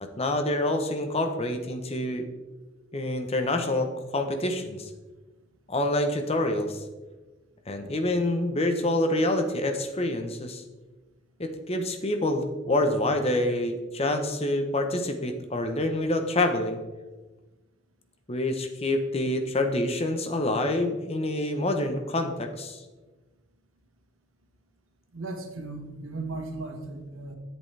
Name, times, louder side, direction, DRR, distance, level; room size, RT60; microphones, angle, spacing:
voice 1, 0.0-2.3 2.9-4.9 5.7-6.8 7.7-10.6 11.4-16.8 18.3-22.8, left 1 dB, 30° left, 6 dB, 0.8 m, -27 dB
voice 2, 25.1-27.4, right 2 dB, 85° right, 4 dB, 1.4 m, -36 dB
10.5 x 8.2 x 3.3 m, 1.2 s
head